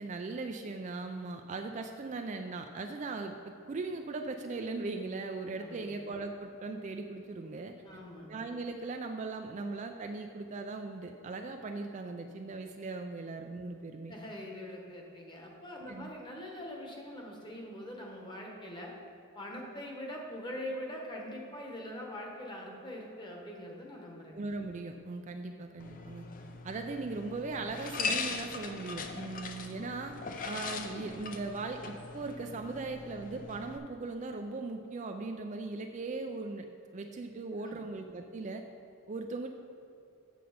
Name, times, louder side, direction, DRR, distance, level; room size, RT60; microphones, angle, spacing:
voice 1, 0.0-7.8 8.2-14.1 15.9-16.1 24.3-26.2 26.6-30.1 30.4-36.7 36.9-38.6 39.1-39.5, right 3 dB, 35° right, 5 dB, 0.3 m, -39 dB
voice 2, 5.6-5.9 7.8-8.3 14.1-18.9 19.3-24.4 37.6-37.8, left 1 dB, 20° left, -1 dB, 1.1 m, -43 dB
sound 1, 25.8-33.8, left 4 dB, 40° left, 0.5 m, -40 dB
7.8 x 6.6 x 5.0 m, 2.7 s
head